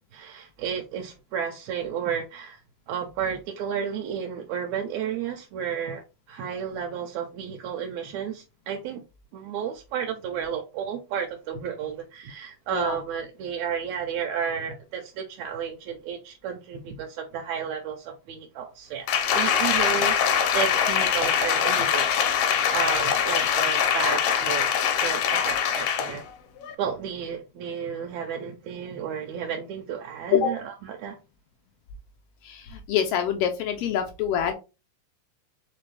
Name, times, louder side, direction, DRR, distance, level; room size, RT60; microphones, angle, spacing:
voice 1, 0.1-2.6 2.9-9.0 9.3-24.7 25.0-26.2 26.8-31.2, right 8 dB, 80° right, 1.8 m, -32 dB
Applause, 19.1-26.2 26.6-26.7, left 8 dB, 75° left, 1.4 m, -23 dB
voice 2, 32.4-34.5, left 9 dB, 90° left, 1.3 m, -25 dB
4.4 x 3.4 x 3.2 m
omnidirectional pair, 3.3 m